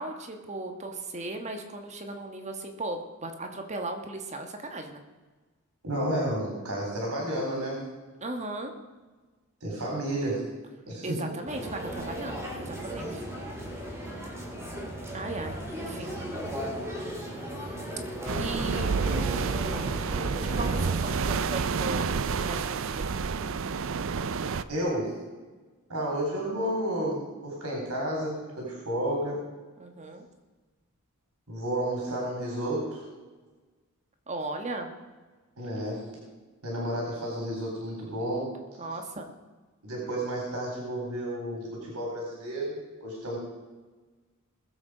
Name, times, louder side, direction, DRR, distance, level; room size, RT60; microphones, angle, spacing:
voice 1, 0.0-5.0 8.2-8.7 11.0-13.2 15.1-16.1 18.4-19.6 20.4-22.1 22.4-23.1 29.8-30.3 34.3-34.9 38.8-39.3, right 2 dB, 30° right, 4 dB, 1.4 m, -37 dB
voice 2, 5.8-7.9 9.6-10.5 10.9-11.2 24.7-25.2 25.9-29.4 31.5-33.0 35.6-36.1 36.6-38.6 39.8-43.4, right 1 dB, 75° right, -2 dB, 3.9 m, -31 dB
sound 1, 11.5-21.1, equal, 10° right, 2.9 m, -36 dB
sound 2, 18.3-24.6, right 5 dB, 60° right, 0.6 m, -29 dB
20.5 x 7.8 x 5.0 m, 1.3 s
head